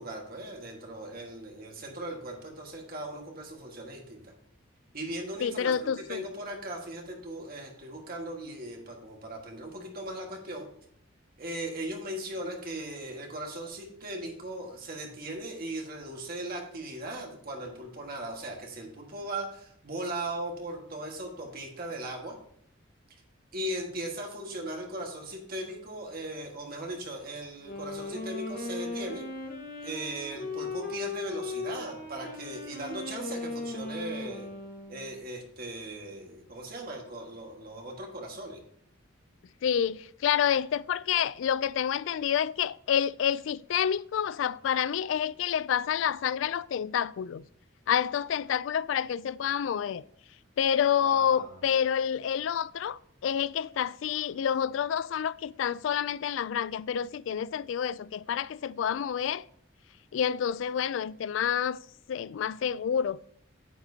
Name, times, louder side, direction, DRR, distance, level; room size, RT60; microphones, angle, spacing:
voice 1, 0.0-4.2 4.9-10.7 11.4-22.4 23.1-23.2 23.5-29.3 29.8-34.5 34.9-38.6 51.0-51.6, right 1 dB, 50° right, 1.7 m, -38 dB
voice 2, 5.4-6.2 39.6-47.4 47.9-50.0 50.6-59.4 60.1-61.8 62.1-63.2, left 8 dB, 70° left, 0.3 m, -28 dB
Wind instrument woodwind instrument, 27.5-35.3, left 3 dB, 45° left, 1.3 m, -38 dB
9.2 x 8.9 x 2.8 m
head